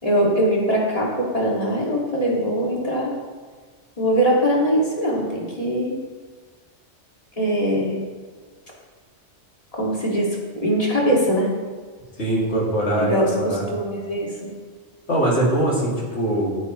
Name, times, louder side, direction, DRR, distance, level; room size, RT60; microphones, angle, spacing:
voice 1, 0.0-3.2 4.0-5.9 7.4-8.0 9.7-11.5 13.0-14.4, equal, 30° left, -4 dB, 2.4 m, -22 dB
voice 2, 12.2-13.6 15.1-16.6, right 1 dB, 70° left, -5 dB, 3.0 m, -22 dB
14.5 x 9.0 x 3.2 m, 1.5 s
omnidirectional pair, 1.2 m